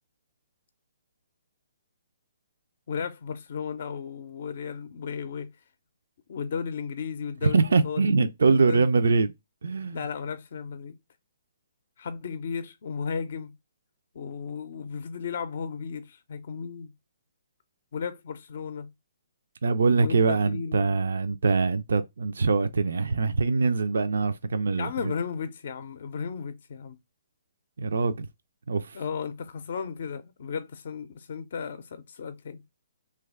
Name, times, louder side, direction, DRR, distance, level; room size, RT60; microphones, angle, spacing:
voice 1, 2.9-5.5 6.3-8.1 8.5-8.9 9.9-11.0 12.0-13.6 14.1-16.9 17.9-18.9 20.0-21.0 24.8-27.0 28.9-32.6, left 6 dB, 60° left, 0.4 m, -34 dB
voice 2, 7.4-9.3 9.6-10.0 19.6-25.1 27.8-28.3 28.7-29.0, right 4 dB, 75° right, 0.3 m, -23 dB
3.0 x 2.3 x 3.4 m
hypercardioid pair, 145°, 0 cm